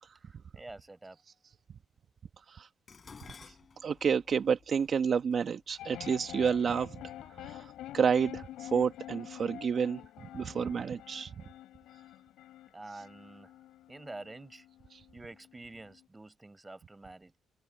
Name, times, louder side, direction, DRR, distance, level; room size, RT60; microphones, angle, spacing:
voice 1, 0.2-1.2 12.7-13.5 13.9-14.7 15.1-17.4, right 2 dB, 15° right, 7.8 m, -48 dB
Dishes pots and pans, 2.9-7.2 8.1-8.5 8.9-9.7 10.0-10.1, left 5 dB, 40° left, 7.4 m, -56 dB
voice 2, 3.8-7.0 7.4-10.0 10.3-11.3 14.9-15.0, right 6 dB, 50° right, 1.1 m, -30 dB
sound 1, 5.8-16.1, left 13 dB, 85° left, 5.4 m, -47 dB
cardioid pair, 90°, 0 cm